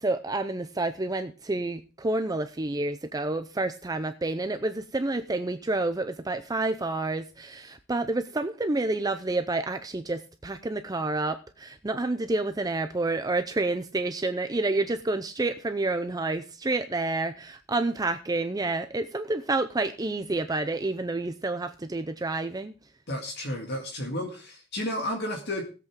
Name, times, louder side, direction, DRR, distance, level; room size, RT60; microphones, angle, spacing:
voice 1, 0.0-22.7, right 2 dB, 20° right, 9 dB, 0.6 m, -29 dB
voice 2, 23.1-25.6, left 1 dB, 55° left, 2 dB, 2.0 m, -32 dB
18.5 x 8.1 x 3.7 m, 0.34 s
head